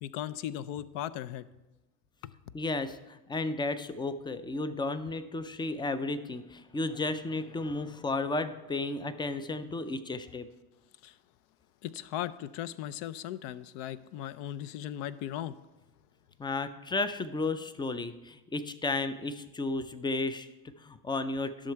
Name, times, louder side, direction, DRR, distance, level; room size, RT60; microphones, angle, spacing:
voice 1, 0.0-1.5 2.2-2.3 11.0-11.2 11.8-15.5, left 11 dB, 65° left, 15 dB, 0.6 m, -37 dB
voice 2, 2.5-10.5 16.4-21.7, left 2 dB, 10° left, 12 dB, 0.4 m, -33 dB
11.5 x 6.5 x 4.5 m, 1.1 s
supercardioid pair, 90°, 46 cm